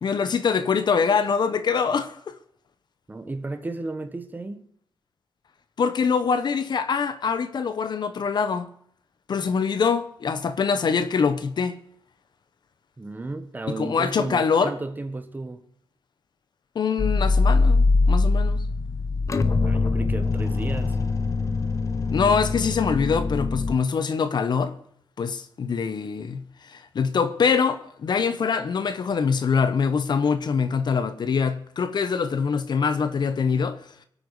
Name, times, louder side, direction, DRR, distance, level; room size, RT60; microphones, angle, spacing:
voice 1, 0.0-2.4 5.8-8.7 9.3-11.7 13.7-14.7 16.7-18.6 22.1-24.7 25.2-33.8, left 6 dB, 55° left, 1.1 m, -24 dB
voice 2, 3.1-4.7 13.0-15.6 19.6-21.0, right 2 dB, 20° right, 1.5 m, -33 dB
sound 1, 17.0-23.7, left 3 dB, 40° left, 1.0 m, -22 dB
25.0 x 8.7 x 5.0 m
wide cardioid pair, 120°, 9 cm